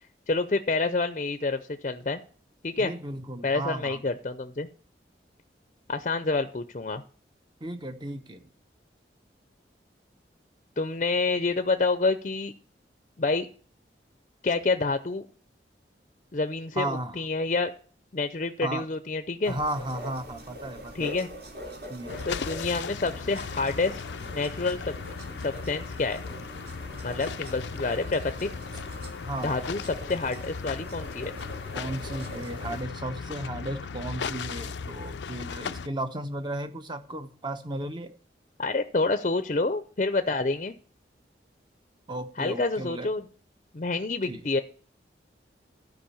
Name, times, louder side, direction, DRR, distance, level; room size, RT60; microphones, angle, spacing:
voice 1, 0.3-2.2 2.6-2.9 3.4-4.7 5.9-7.0 10.8-12.5 13.2-13.5 14.4-15.3 16.3-17.7 18.1-19.5 20.9-21.3 22.2-24.0 24.3-24.9 25.4-26.2 27.0-28.5 29.4-31.3 38.6-40.8 42.4-43.2 43.7-44.6, left 3 dB, 40° left, 0.6 m, -28 dB
voice 2, 2.8-4.0 7.6-8.5 16.8-17.2 18.6-18.8 19.5-21.2 21.9-22.2 28.7-28.8 29.3-29.7 31.7-38.1 42.1-43.1 44.3-44.4, right 1 dB, 25° right, 0.9 m, -34 dB
sound 1, 19.4-32.8, equal, 55° right, 2.7 m, -43 dB
sound 2, 22.1-35.9, left 5 dB, 90° left, 0.5 m, -37 dB
13.0 x 5.3 x 7.0 m
head